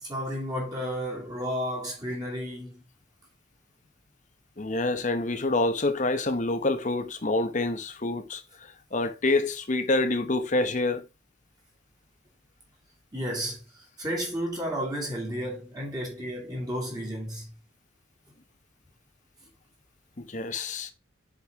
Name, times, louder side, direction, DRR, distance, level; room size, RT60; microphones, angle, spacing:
voice 1, 0.0-2.8 13.1-17.5, equal, 20° right, 2.4 m, -32 dB
voice 2, 4.6-11.0 20.2-20.9, left 2 dB, 35° left, 0.9 m, -27 dB
7.4 x 5.2 x 3.5 m
head